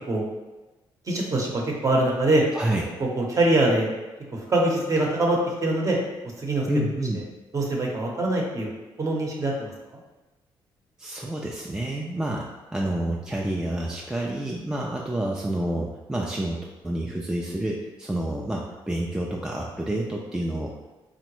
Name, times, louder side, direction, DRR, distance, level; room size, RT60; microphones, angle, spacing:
voice 1, 1.1-2.4 3.0-3.9 4.3-6.0 6.4-6.7 7.5-8.7 9.0-9.7, right 2 dB, 35° right, -1 dB, 0.8 m, -23 dB
voice 2, 2.5-2.8 6.7-7.3 11.0-20.9, right 1 dB, 5° right, -1 dB, 0.3 m, -29 dB
3.7 x 2.1 x 3.0 m, 1.1 s
cardioid pair, 85°, 9 cm